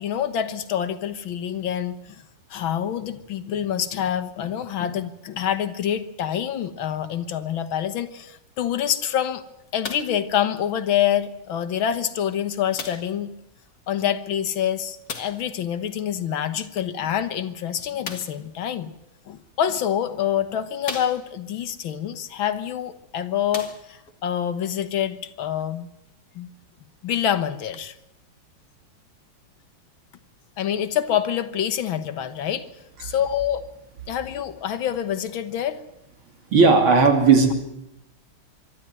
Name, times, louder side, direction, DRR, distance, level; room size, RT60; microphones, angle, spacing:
voice 1, 0.0-2.2 2.5-9.4 9.7-13.3 13.9-18.9 19.3-25.9 26.4-26.5 27.0-28.0 30.6-32.7 33.0-33.7 34.1-35.8, left 9 dB, 75° left, 11 dB, 2.0 m, -26 dB
sound 1, 9.8-10.2 11.1-11.2 12.8-13.2 15.1-15.5 18.0-18.4 19.4-19.5 20.1-20.2 20.8-21.5 22.8-22.9 23.4-24.2 25.0-25.1, left 4 dB, 50° left, 2.4 m, -36 dB
voice 2, 36.5-37.5, right 4 dB, 80° right, 5 dB, 3.6 m, -15 dB
25.0 x 12.5 x 9.0 m, 0.87 s
omnidirectional pair, 2.3 m